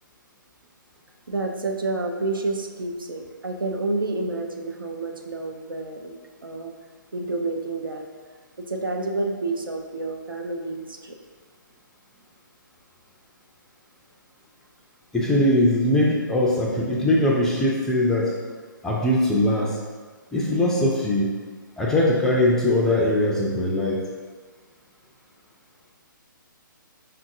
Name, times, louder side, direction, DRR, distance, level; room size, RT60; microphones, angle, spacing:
voice 1, 1.3-6.1 6.4-6.7 7.1-8.0 8.7-11.2, right 2 dB, 85° right, 3 dB, 0.6 m, -29 dB
voice 2, 15.1-18.3 18.8-19.8 20.3-21.3 21.8-24.0, left 1 dB, 5° left, -3 dB, 0.3 m, -21 dB
5.4 x 2.5 x 2.6 m, 1.5 s
figure-of-eight pair, 140°, 11 cm